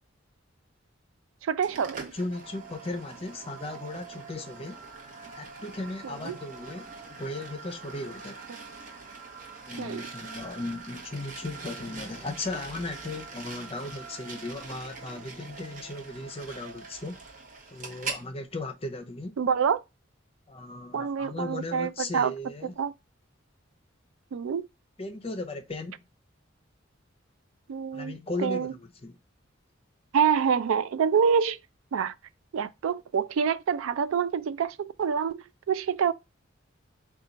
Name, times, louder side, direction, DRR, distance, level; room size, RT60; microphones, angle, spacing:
voice 1, 1.4-2.1 6.0-6.4 9.8-10.1 19.4-19.8 20.9-22.3 22.8-22.9 24.3-24.7 27.7-28.7 30.1-31.6 31.9-32.1 32.5-36.1, right 7 dB, 90° right, 0.3 m, -27 dB
sound 1, 1.6-18.3, right 4 dB, 40° right, 0.9 m, -43 dB
voice 2, 2.0-4.8 5.4-6.9 7.2-8.4 9.6-17.2 17.7-19.4 20.5-22.7 25.0-26.0 27.9-29.2, left 2 dB, 30° left, 0.6 m, -36 dB
4.3 x 2.3 x 3.8 m
head